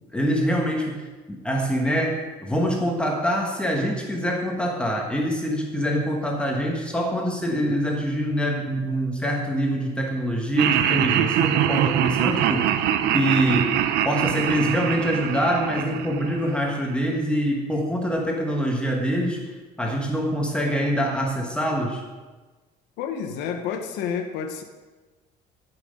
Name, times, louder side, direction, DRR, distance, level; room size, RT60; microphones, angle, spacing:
voice 1, 0.1-13.7 14.0-19.5 19.8-22.0, equal, 5° left, 0 dB, 1.2 m, -25 dB
Laughter, 10.6-16.8, right 10 dB, 70° right, 0.7 m, -23 dB
voice 2, 23.0-24.6, left 7 dB, 80° left, 5 dB, 1.1 m, -29 dB
15.5 x 5.9 x 5.2 m, 1.3 s
cardioid pair, 175°, 17 cm